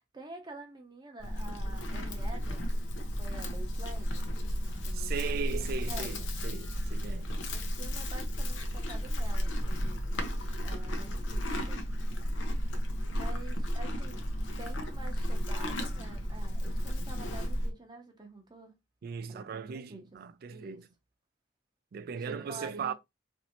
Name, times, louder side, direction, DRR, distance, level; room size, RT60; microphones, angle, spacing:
voice 1, 0.0-2.7 3.0-4.3 4.6-6.3 7.5-10.3 10.6-11.8 13.1-14.2 14.6-18.7 19.3-20.1 20.5-20.8 22.3-22.9, right 2 dB, 25° right, 0.7 m, -48 dB
Livestock farm animals working animals, 1.2-17.7, equal, 90° left, 0.6 m, -33 dB
voice 2, 4.9-7.3 19.0-20.9 21.9-22.9, right 6 dB, 55° right, 0.3 m, -38 dB
3.0 x 2.6 x 2.8 m
head